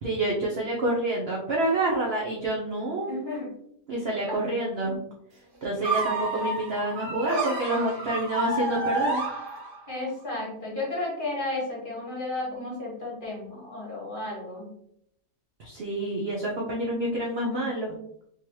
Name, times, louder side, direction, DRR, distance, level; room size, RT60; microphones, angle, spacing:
voice 1, 0.0-3.2 3.9-5.0 5.6-9.2 15.6-18.0, right 1 dB, 60° right, -3 dB, 0.6 m, -28 dB
voice 2, 3.1-3.5 4.8-4.9 9.9-14.7, left 2 dB, 30° left, -4 dB, 1.4 m, -33 dB
sound 1, 5.8-10.0, right 2 dB, 75° right, 1.7 m, -29 dB
3.7 x 2.9 x 3.1 m, 0.72 s
omnidirectional pair, 1.8 m